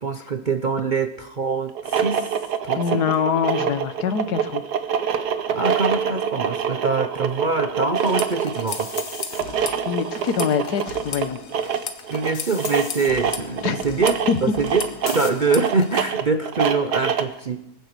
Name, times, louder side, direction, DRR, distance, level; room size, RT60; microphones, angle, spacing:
voice 1, 0.0-2.3 2.6-3.0 5.5-8.9 12.1-17.6, right 4 dB, 45° right, 8 dB, 0.6 m, -24 dB
sound 1, 1.7-17.4, right 7 dB, 90° right, 1.6 m, -25 dB
voice 2, 2.8-4.6 9.5-11.4 13.6-13.8 14.3-14.4, left 7 dB, 80° left, 12 dB, 1.5 m, -24 dB
sound 2, 8.0-16.1, left 6 dB, 60° left, 1.6 m, -35 dB
20.0 x 9.2 x 6.7 m, 0.80 s
omnidirectional pair, 1.7 m